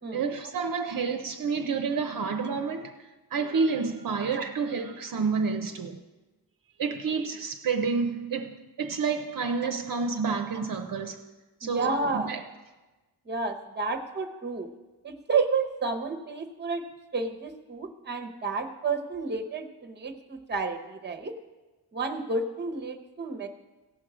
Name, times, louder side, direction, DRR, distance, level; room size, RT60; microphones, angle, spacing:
voice 1, 0.1-2.9 3.3-6.0 6.8-11.2 11.6-12.4, right 5 dB, 55° right, 0.6 m, -29 dB
voice 2, 11.6-12.4 13.2-14.7 15.0-16.8 17.1-21.3 21.9-23.5, right 4 dB, 25° right, 0.8 m, -31 dB
17.0 x 6.1 x 4.9 m
wide cardioid pair, 175°, 40 cm